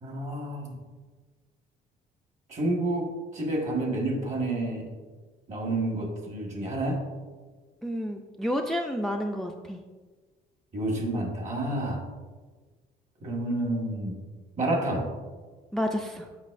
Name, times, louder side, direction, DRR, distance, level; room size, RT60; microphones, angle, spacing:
voice 1, 0.0-0.7 2.5-4.9 5.5-7.0 10.7-12.0 13.2-14.1 14.6-15.1, right 1 dB, 45° right, 0 dB, 1.6 m, -29 dB
voice 2, 7.8-9.8 15.7-16.3, equal, ahead, 4 dB, 0.3 m, -30 dB
7.3 x 5.2 x 2.5 m, 1.4 s
cardioid pair, 110°, 17 cm